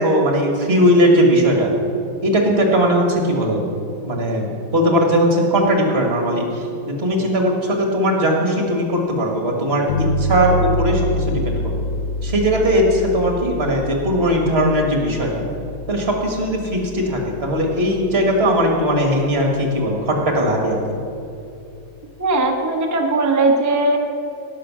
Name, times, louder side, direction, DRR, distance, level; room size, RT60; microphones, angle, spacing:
voice 1, 0.0-1.7 2.2-3.6 4.0-6.5 6.8-11.8 12.2-15.4 15.9-20.8, equal, 35° right, 1 dB, 1.9 m, -18 dB
sound 1, 9.9-19.2, left 1 dB, 75° left, 1.5 m, -27 dB
voice 2, 22.2-24.0, right 2 dB, 15° right, 2 dB, 0.8 m, -18 dB
16.5 x 6.6 x 6.2 m, 2.6 s
omnidirectional pair, 1.9 m